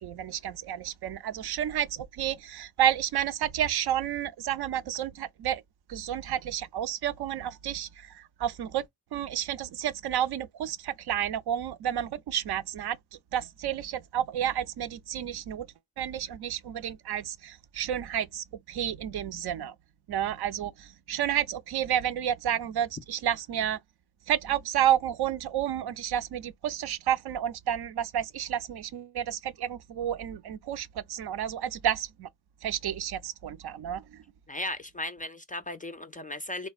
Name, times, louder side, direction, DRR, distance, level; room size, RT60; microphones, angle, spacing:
voice 1, 0.0-5.6 5.9-8.8 9.1-13.0 13.3-15.7 16.0-19.7 20.1-23.8 24.3-32.3 32.6-34.0, right 10 dB, 60° right, 0.5 m, -30 dB
voice 2, 34.5-36.7, left 1 dB, 20° left, 0.3 m, -36 dB
3.3 x 2.2 x 2.3 m
cardioid pair, 60°, 44 cm